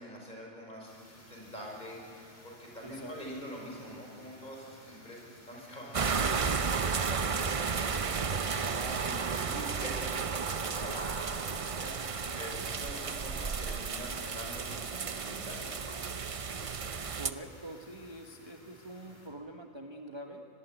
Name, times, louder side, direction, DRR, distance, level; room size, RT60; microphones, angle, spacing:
voice 1, 0.0-8.1 9.0-9.9 10.2-11.9 12.4-16.1, equal, 35° left, -1 dB, 5.5 m, -45 dB
sound 1, 0.8-19.3, left 1 dB, 50° left, 4.2 m, -56 dB
voice 2, 2.8-3.2 8.6-9.2 12.3-12.7 17.2-20.5, right 1 dB, 20° right, 3 dB, 1.2 m, -45 dB
sound 2, 5.9-17.3, right 5 dB, 40° right, 0.5 m, -33 dB
24.0 x 19.5 x 9.2 m, 2.6 s
omnidirectional pair, 1.4 m